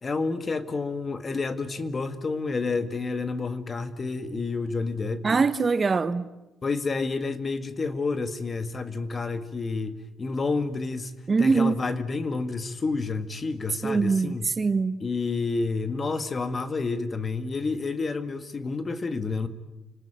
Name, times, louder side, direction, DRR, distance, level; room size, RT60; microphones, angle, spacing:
voice 1, 0.0-5.4 6.6-11.1 11.4-14.5 15.0-19.5, left 4 dB, 35° left, 1.9 m, -29 dB
voice 2, 5.2-6.3 11.3-11.8 13.8-15.0, right 4 dB, 35° right, 1.0 m, -23 dB
29.0 x 19.5 x 9.0 m
cardioid pair, 90°, 0 cm